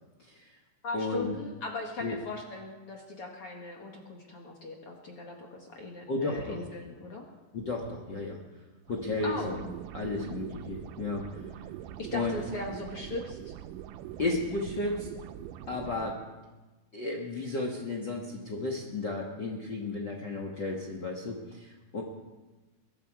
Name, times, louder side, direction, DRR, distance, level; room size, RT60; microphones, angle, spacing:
voice 1, 0.2-0.6 0.9-1.3 2.0-2.1 6.1-6.6 7.5-8.4 8.9-11.4 12.1-12.4 14.2-15.1 15.7-16.2 16.9-22.0, left 3 dB, 75° left, -1 dB, 1.0 m, -33 dB
voice 2, 0.8-7.3 9.2-9.6 12.0-13.5, left 2 dB, 50° left, 1 dB, 1.7 m, -39 dB
sound 1, 8.9-16.1, right 11 dB, 85° right, 1.9 m, -43 dB
22.5 x 12.0 x 4.7 m, 1.2 s
omnidirectional pair, 4.5 m